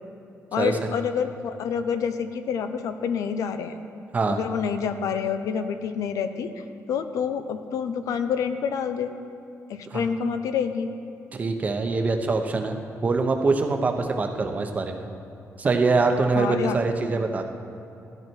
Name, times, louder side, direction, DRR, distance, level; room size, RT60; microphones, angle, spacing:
voice 1, 0.5-3.7 4.3-6.5 6.9-9.1 9.7-10.9 16.4-16.8, left 7 dB, 90° left, 9 dB, 0.7 m, -27 dB
voice 2, 11.3-12.8 13.0-15.1 15.6-17.4, right 3 dB, 25° right, 5 dB, 0.8 m, -24 dB
13.5 x 11.5 x 4.5 m, 2.7 s
wide cardioid pair, 165°, 6 cm